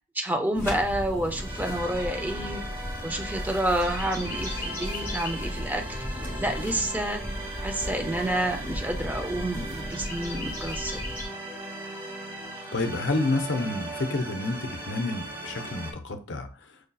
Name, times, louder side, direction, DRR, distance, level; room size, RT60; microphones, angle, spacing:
voice 1, 0.1-2.6 3.0-5.8 6.4-7.2 7.6-11.0, right 1 dB, 10° right, 4 dB, 0.5 m, -29 dB
sound 1, 0.5-11.3, left 1 dB, 15° left, 1.0 m, -35 dB
sound 2, 1.3-15.9, right 2 dB, 25° right, 1.0 m, -38 dB
voice 2, 12.7-16.8, left 2 dB, 60° left, 6 dB, 0.6 m, -29 dB
6.3 x 2.6 x 2.3 m, 0.37 s
head